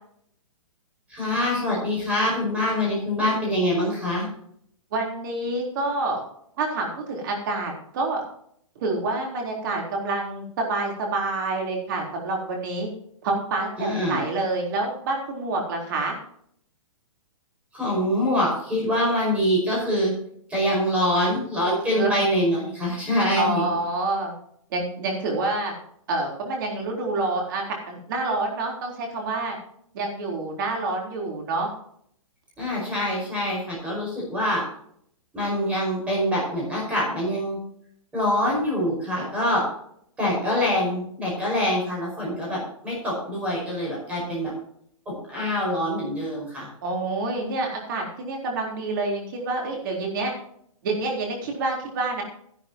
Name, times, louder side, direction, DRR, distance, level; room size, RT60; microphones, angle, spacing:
voice 1, 1.1-4.3 13.8-14.2 17.7-20.1 20.5-23.6 32.6-34.6 35.3-37.6 38.1-39.6 40.2-44.5 45.1-46.7, left 1 dB, 5° right, -4 dB, 5.3 m, -25 dB
voice 2, 4.9-6.2 6.6-8.2 8.8-12.9 13.2-16.1 21.9-22.2 23.3-24.4 24.7-25.7 26.1-29.6 29.9-31.7 46.8-50.3 50.8-52.2, right 3 dB, 35° right, 0 dB, 3.7 m, -27 dB
12.5 x 11.5 x 2.9 m, 0.67 s
hypercardioid pair, 170°, 18 cm